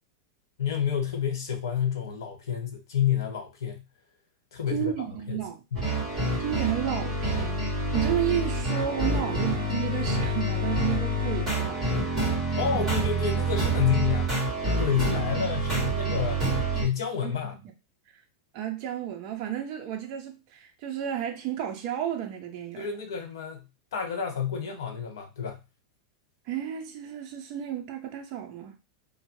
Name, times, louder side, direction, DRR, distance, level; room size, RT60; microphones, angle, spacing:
voice 1, 0.6-3.8 4.5-4.9 5.3-5.4 5.7-6.0 12.5-14.4 14.8-16.4 16.7-17.5 22.8-23.7 23.9-25.6, left 8 dB, 90° left, 1.1 m, -29 dB
voice 2, 4.7-5.6 6.4-7.7 7.9-12.1 12.6-12.9 17.2-17.4 17.6-17.7 18.1-18.2 18.5-22.9 26.5-28.8, right 10 dB, 35° right, 0.5 m, -32 dB
sound 1, 5.7-16.8, right 1 dB, 10° right, 1.5 m, -27 dB
2.7 x 2.1 x 3.0 m
supercardioid pair, 170°, 2 cm